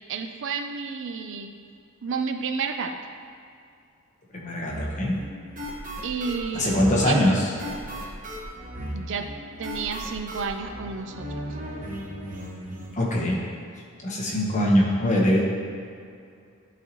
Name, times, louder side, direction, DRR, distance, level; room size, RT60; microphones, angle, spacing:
voice 1, 0.1-1.5 2.0-3.0 6.0-7.3 8.9-9.3 9.6-11.6, right 5 dB, 60° right, 6 dB, 0.4 m, -31 dB
voice 2, 4.3-5.2 6.5-7.3 12.9-13.4 14.0-15.5, left 1 dB, 35° left, -3 dB, 1.1 m, -22 dB
sound 1, 4.7-12.9, equal, 40° right, 0.9 m, -36 dB
11.5 x 4.1 x 3.0 m, 2.4 s
head